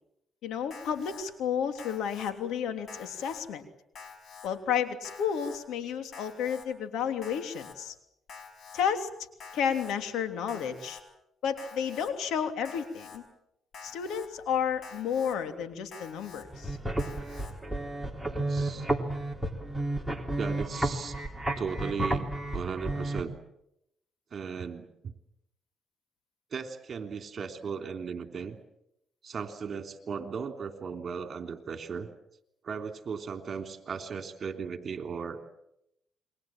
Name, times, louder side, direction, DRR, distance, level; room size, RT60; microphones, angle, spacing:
voice 1, 0.4-3.6 4.4-7.9 8.7-9.1 9.5-11.0 11.4-13.2 13.8-16.8, left 8 dB, 85° left, 8 dB, 3.1 m, -31 dB
Alarm, 0.7-1.2 1.8-2.3 2.9-3.4 3.9-4.5 5.0-5.6 6.1-6.7 7.2-7.7 8.3-8.8 9.4-9.9 10.5-11.0 11.6-12.1 12.6-13.2 13.7-14.3 14.8-15.3 15.9-16.4 17.0-17.5, left 5 dB, 60° left, 5.4 m, -47 dB
sound 1, 16.4-23.2, right 1 dB, ahead, 3.3 m, -32 dB
voice 2, 18.2-18.9 20.4-21.2 21.6-23.3 24.3-25.1 26.5-28.6 29.2-32.1 32.6-35.6, right 6 dB, 50° right, 6 dB, 3.3 m, -37 dB
29.0 x 22.5 x 7.6 m, 0.81 s
cardioid pair, 90°, 0 cm